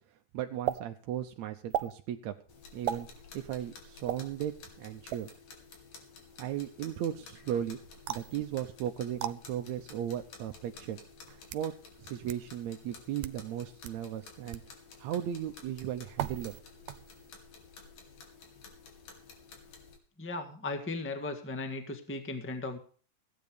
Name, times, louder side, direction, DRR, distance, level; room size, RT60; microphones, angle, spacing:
voice 1, 0.3-2.3 2.7-3.1 3.3-5.3 6.4-7.8 8.1-11.0 11.3-11.7 12.0-14.6 15.0-16.6, right 10 dB, 70° right, 5 dB, 1.9 m, -36 dB
sound 1, 0.7-0.8 1.7-1.9 2.9-3.1 4.1-4.2 5.1-5.4 8.1-8.3 9.2-9.3 10.3-10.4 11.2-11.7 12.3-12.4 13.1-13.4 13.8-14.0 14.5-14.7 16.2-16.6 16.9-17.3, right 12 dB, 90° right, 2.4 m, -35 dB
sound 2, 2.5-20.0, left 4 dB, 75° left, 4.0 m, -53 dB
voice 2, 20.2-22.8, left 3 dB, 10° left, 6 dB, 0.6 m, -37 dB
16.0 x 9.6 x 5.1 m, 0.43 s
omnidirectional pair, 3.7 m